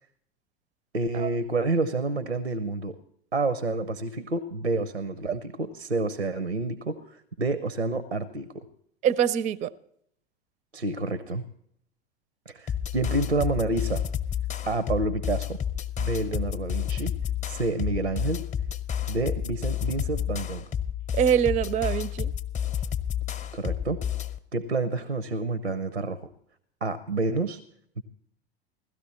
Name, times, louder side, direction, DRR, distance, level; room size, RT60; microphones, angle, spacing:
voice 1, 0.9-3.0 3.3-8.7 10.7-11.5 12.5-14.0 14.7-15.6 16.0-17.1 17.5-18.5 19.1-20.6 23.5-24.0 24.5-26.2 26.8-27.6 28.0-28.1, right 2 dB, 90° right, 0.8 m, -29 dB
voice 2, 9.0-9.7 21.1-22.3, right 9 dB, 25° right, 0.5 m, -24 dB
sound 1, 12.7-24.4, left 9 dB, 20° left, 0.7 m, -30 dB
17.0 x 13.0 x 4.1 m
figure-of-eight pair, 85°, 32 cm